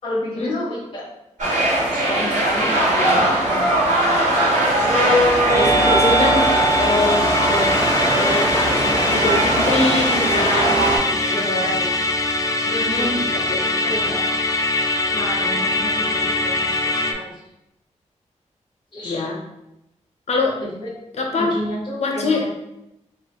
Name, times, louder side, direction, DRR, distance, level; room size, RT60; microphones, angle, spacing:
voice 1, 0.0-1.0 1.9-4.1 10.9-12.0 12.9-13.6 13.8-14.4 15.1-17.3 18.9-19.2 20.8-20.9 21.4-22.5, left 1 dB, 45° left, -10 dB, 1.3 m, -31 dB
sound 1, 1.4-11.0, right 1 dB, 80° right, 1.4 m, -19 dB
voice 2, 5.5-7.7 8.1-11.4 12.6-14.1 19.0-19.4 20.3-20.6 21.1-21.5 22.0-22.5, left 3 dB, 60° left, 1 dB, 0.7 m, -24 dB
Musical instrument, 5.5-17.1, left 1 dB, 25° left, 0.4 m, -22 dB
4.0 x 2.5 x 3.0 m, 0.87 s
wide cardioid pair, 95°, 13 cm